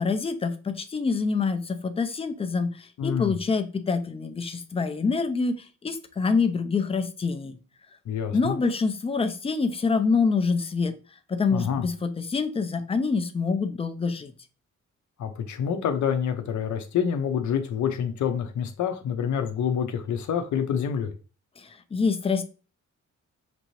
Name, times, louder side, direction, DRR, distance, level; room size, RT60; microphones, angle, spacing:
voice 1, 0.0-7.6 8.3-10.9 11.3-14.3 21.6-22.4, left 4 dB, 20° left, 0.4 m, -26 dB
voice 2, 3.0-3.3 8.1-8.6 11.5-11.8 15.2-21.1, left 8 dB, 70° left, 0.6 m, -27 dB
6.0 x 2.7 x 3.0 m
wide cardioid pair, 170°, 30 cm